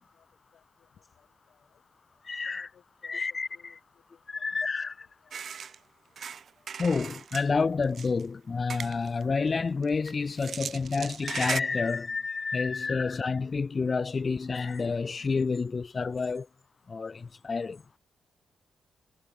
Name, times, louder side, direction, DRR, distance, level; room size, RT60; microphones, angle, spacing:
voice 1, 0.1-1.8 2.4-4.4 4.8-5.4, left 8 dB, 60° left, 5.3 m, -63 dB
voice 2, 2.2-2.7 3.0-3.5 4.3-5.1 6.8-16.5 16.9-17.8, left 4 dB, 30° left, 0.4 m, -29 dB
sound 1, 5.3-5.8 6.2-7.5 7.8-8.2 8.7-9.2 9.8-11.6, right 7 dB, 50° right, 0.5 m, -37 dB
cardioid pair, 135°, 0 cm